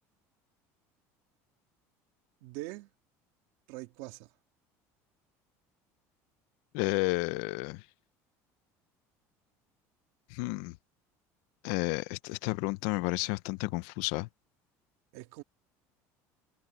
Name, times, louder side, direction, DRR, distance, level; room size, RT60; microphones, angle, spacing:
voice 1, 2.4-2.9 3.7-4.3 15.1-15.4, right 19 dB, 70° right, 1.9 m, -42 dB
voice 2, 6.7-7.8 10.3-10.8 11.6-14.3, left 23 dB, 70° left, 0.5 m, -31 dB
cardioid pair, 175°, 7 cm